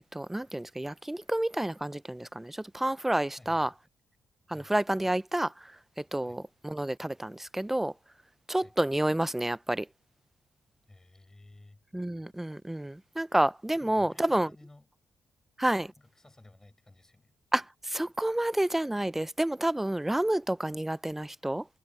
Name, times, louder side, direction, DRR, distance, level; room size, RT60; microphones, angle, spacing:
voice 1, 0.1-3.7 4.5-5.7 6.0-7.9 8.5-9.9 11.9-14.5 15.6-15.9 17.5-21.6, right 1 dB, 10° right, 0.5 m, -29 dB
voice 2, 3.4-3.7 4.5-4.7 6.2-6.4 8.5-8.7 10.8-11.8 13.7-14.9 16.0-17.3, left 2 dB, 15° left, 6.6 m, -55 dB
cardioid pair, 95°, 3 cm